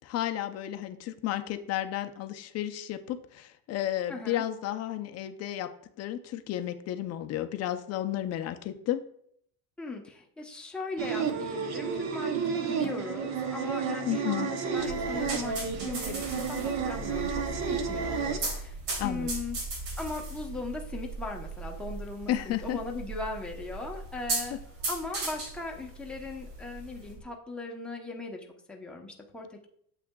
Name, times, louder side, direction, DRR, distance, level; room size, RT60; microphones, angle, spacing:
voice 1, 0.0-5.7 6.0-9.0 14.1-14.5 19.0-19.3 22.3-22.8, left 12 dB, 40° left, 9 dB, 0.5 m, -32 dB
voice 2, 4.1-4.4 9.8-18.8 19.0-19.6 20.0-24.6 24.9-29.7, left 3 dB, ahead, -1 dB, 0.7 m, -38 dB
sound 1, 11.0-18.4, right 6 dB, 45° right, 0.8 m, -31 dB
sound 2, 14.8-27.2, right 2 dB, 75° right, 3.0 m, -37 dB
8.4 x 7.5 x 2.3 m, 0.68 s
cardioid pair, 155°, 40 cm